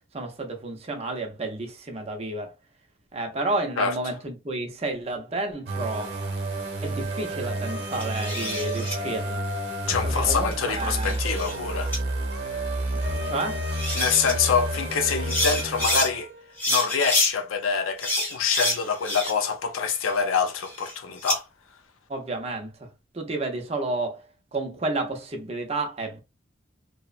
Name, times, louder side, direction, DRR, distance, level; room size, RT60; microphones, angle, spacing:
voice 1, 0.1-2.5 3.1-6.2 6.8-9.4 10.0-11.2 13.2-13.6 22.1-22.9 23.1-24.2 24.5-26.2, right 2 dB, 30° right, 0.5 m, -31 dB
sound 1, 5.7-16.5, right 1 dB, 50° right, 0.8 m, -30 dB
sound 2, 7.9-9.0 10.5-11.6 11.9-12.0 13.4-13.5 13.7-14.3 15.1-16.1 16.6-17.3 18.0-19.5 19.9-21.4, left 1 dB, 10° left, 0.7 m, -28 dB
voice 2, 9.9-11.9 13.9-16.3 16.7-21.4, left 6 dB, 85° left, 0.5 m, -25 dB
2.8 x 2.1 x 2.4 m
head